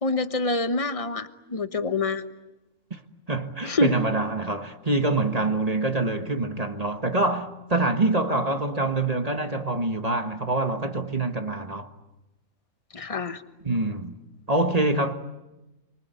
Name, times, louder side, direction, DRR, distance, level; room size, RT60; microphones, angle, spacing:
voice 1, 0.0-2.2 3.6-4.0 12.9-13.4, left 3 dB, 25° left, 1.2 m, -26 dB
voice 2, 3.3-11.9 13.6-14.2 14.5-15.1, right 2 dB, 30° right, 1.5 m, -25 dB
29.5 x 24.0 x 8.3 m
omnidirectional pair, 1.4 m